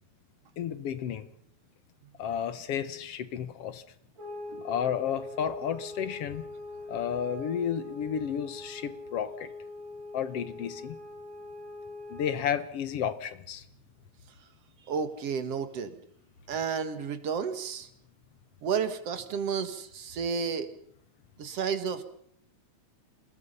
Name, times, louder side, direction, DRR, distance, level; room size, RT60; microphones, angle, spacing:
voice 1, 0.6-1.3 2.2-3.8 4.6-6.4 6.9-9.5 10.1-11.0 12.1-13.6, left 8 dB, 60° left, 13 dB, 2.1 m, -32 dB
sound 1, 4.2-12.5, left 2 dB, 40° right, 4.4 m, -43 dB
voice 2, 14.9-15.9 16.5-17.9 18.6-20.7 21.4-22.0, right 6 dB, 60° right, 10 dB, 2.6 m, -31 dB
27.5 x 20.0 x 5.6 m, 0.68 s
omnidirectional pair, 3.3 m